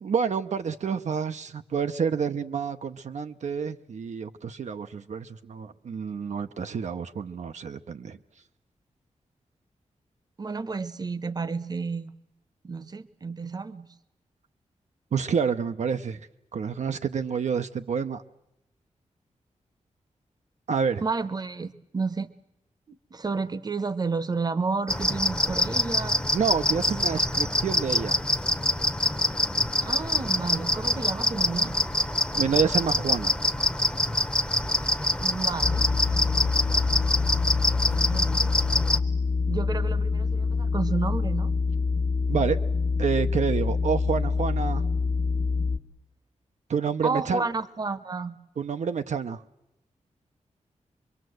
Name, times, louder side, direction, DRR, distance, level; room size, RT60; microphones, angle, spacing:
voice 1, 0.0-8.2 15.1-16.2 16.5-18.2 20.7-21.0 26.3-28.2 32.3-33.4 42.3-42.6 43.0-44.8 46.7-47.4 48.6-49.4, right 6 dB, 70° right, 8 dB, 0.8 m, -28 dB
voice 2, 10.4-12.1 12.6-13.9 21.0-22.3 22.9-26.2 29.2-29.4 29.8-31.7 35.2-35.9 38.0-38.6 39.5-41.5 47.0-48.4, right 4 dB, 35° right, 14 dB, 1.0 m, -31 dB
sound 1, 24.9-39.0, left 1 dB, 5° left, 0.9 m, -25 dB
sound 2, 35.6-45.8, left 4 dB, 60° left, 1.3 m, -26 dB
24.5 x 23.0 x 7.9 m, 0.87 s
wide cardioid pair, 110°, 12 cm